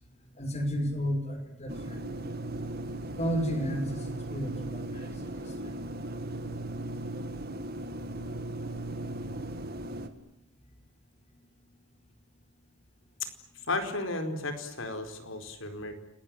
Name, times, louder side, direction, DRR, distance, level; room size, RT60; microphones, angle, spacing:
voice 1, 0.4-2.0 3.2-5.8, equal, 30° left, 6 dB, 5.6 m, -33 dB
sound 1, 1.7-10.1, right 1 dB, 45° right, 2.1 m, -37 dB
voice 2, 13.7-15.9, left 2 dB, 75° left, 7 dB, 4.6 m, -34 dB
29.5 x 20.0 x 9.3 m, 0.87 s
head